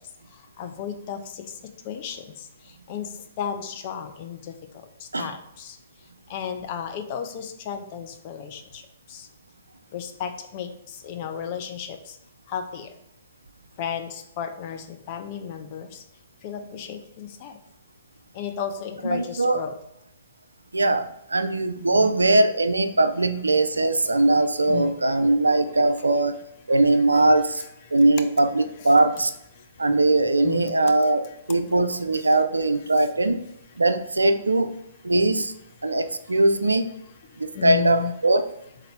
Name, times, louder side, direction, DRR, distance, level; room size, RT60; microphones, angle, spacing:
voice 1, 0.6-1.2 1.9-2.2 2.9-3.1 3.4-4.4 5.2-5.7 6.3-8.6 9.9-10.7 11.0-12.0 12.5-12.9 13.8-14.1 14.4-15.9 16.4-17.5 18.4-19.7 21.9-22.2 24.7-24.9 30.4-30.7 37.6-38.1, left 8 dB, 40° left, 6 dB, 0.5 m, -32 dB
voice 2, 19.0-19.6 20.7-26.4 26.7-27.6 27.9-29.3 29.8-31.2 31.5-33.4 33.8-34.7 35.0-35.5 35.8-36.8 37.4-38.4, right 2 dB, 85° right, 9 dB, 0.4 m, -20 dB
3.9 x 2.8 x 4.6 m, 0.77 s
figure-of-eight pair, 120°, 0 cm